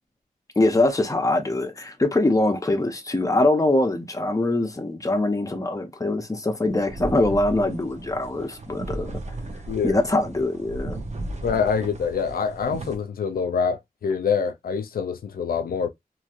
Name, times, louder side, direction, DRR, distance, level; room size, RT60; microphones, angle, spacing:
voice 1, 0.6-9.1 9.8-11.0, left 2 dB, 20° left, 0.8 m, -23 dB
sound 1, 6.7-13.0, right 2 dB, 50° right, 0.8 m, -35 dB
voice 2, 9.7-10.0 11.4-15.9, left 6 dB, 85° left, 0.4 m, -25 dB
3.0 x 2.6 x 2.4 m
wide cardioid pair, 75°, 15 cm